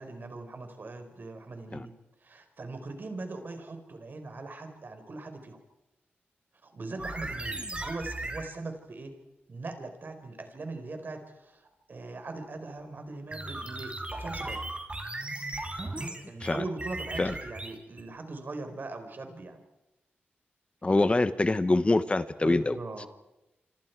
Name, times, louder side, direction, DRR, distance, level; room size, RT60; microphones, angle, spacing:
voice 1, 0.0-1.9 2.2-5.6 6.6-9.2 9.5-14.6 16.3-19.6 22.4-23.1, right 3 dB, 55° right, 6 dB, 4.6 m, -40 dB
sound 1, 7.0-8.5 13.3-18.0, right 2 dB, 30° right, 4.1 m, -37 dB
voice 2, 20.8-22.8, left 2 dB, 30° left, 13 dB, 1.1 m, -25 dB
27.5 x 26.0 x 4.7 m, 0.96 s
cardioid pair, 65°, 4 cm